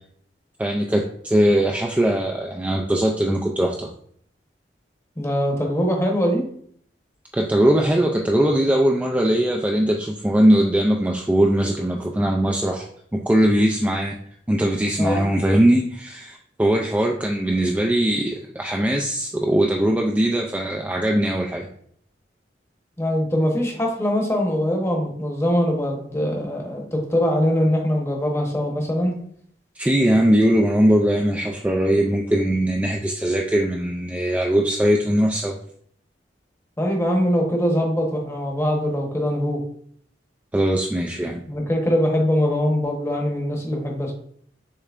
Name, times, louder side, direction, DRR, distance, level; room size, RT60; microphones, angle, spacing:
voice 1, 0.6-3.9 7.3-12.9 13.1-14.2 14.5-21.7 29.8-35.6 40.5-41.4, right 1 dB, 10° right, 0 dB, 0.3 m, -20 dB
voice 2, 5.2-6.5 15.0-15.3 23.0-29.2 36.8-39.6 41.4-44.1, equal, 15° left, 0 dB, 1.0 m, -22 dB
6.7 x 3.2 x 2.4 m, 0.63 s
head